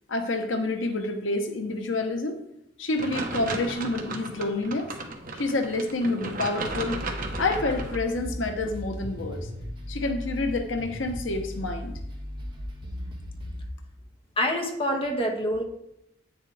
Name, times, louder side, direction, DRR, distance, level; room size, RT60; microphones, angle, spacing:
voice 1, 0.1-2.4 2.8-4.9 5.3-7.0 7.4-9.5 9.9-12.0, left 2 dB, 85° left, 5 dB, 0.9 m, -28 dB
sound 1, 3.0-8.0, right 3 dB, 50° right, 1.1 m, -35 dB
sound 2, 6.7-13.7, left 1 dB, 25° right, 1.4 m, -37 dB
voice 2, 14.4-15.6, equal, 30° left, 2 dB, 1.3 m, -26 dB
9.2 x 7.3 x 3.4 m, 0.82 s
head